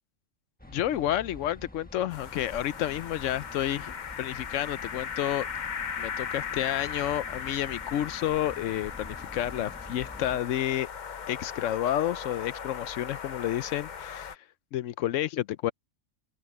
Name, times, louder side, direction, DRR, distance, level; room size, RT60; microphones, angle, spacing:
sound 1, 0.6-10.4, left 1 dB, 5° left, 1.2 m, -48 dB
voice 1, 0.7-5.5 6.0-10.9 11.3-15.7, left 12 dB, 75° left, 0.9 m, -30 dB
sound 2, 2.1-14.4, left 7 dB, 45° left, 0.7 m, -38 dB
omnidirectional pair, 1.3 m